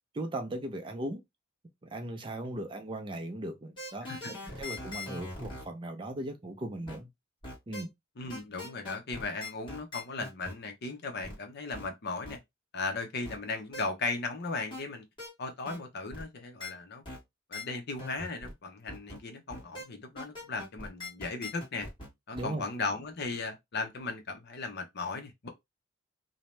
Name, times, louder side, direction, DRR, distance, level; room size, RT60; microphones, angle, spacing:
voice 1, 0.1-1.2 1.9-7.1 7.7-7.9 22.3-22.7, right 1 dB, 25° right, 0.4 m, -38 dB
sound 1, 3.8-5.6 6.9-7.0 7.4-7.8 8.3-10.5 11.2-11.4 11.7-11.9 12.2-12.4 13.2-13.4 13.7-13.9 14.7-14.8 15.2-15.3 15.7-15.8 16.1-16.2 16.6-16.7 17.1-17.2 17.5-17.6 18.0-18.5 18.9-19.2 19.5-19.9 20.2-22.1 22.4-22.5, left 2 dB, 25° left, 1.3 m, -41 dB
voice 2, 8.2-12.4 12.7-15.0 15.4-17.0 17.5-21.9 22.3-25.5, left 3 dB, 55° left, 0.7 m, -37 dB
2.7 x 2.1 x 3.1 m
head